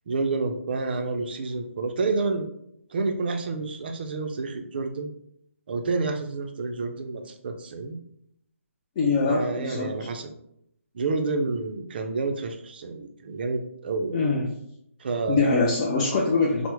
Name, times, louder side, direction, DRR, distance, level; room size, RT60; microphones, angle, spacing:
voice 1, 0.1-2.5 2.9-5.1 5.7-8.0 9.2-10.3 10.9-14.3 15.0-15.6, right 3 dB, 45° right, 5 dB, 0.4 m, -29 dB
voice 2, 9.0-10.1 14.1-14.5 15.3-16.7, left 3 dB, 20° left, -3 dB, 0.3 m, -23 dB
3.4 x 2.0 x 2.9 m, 0.74 s
hypercardioid pair, 160°, 8 cm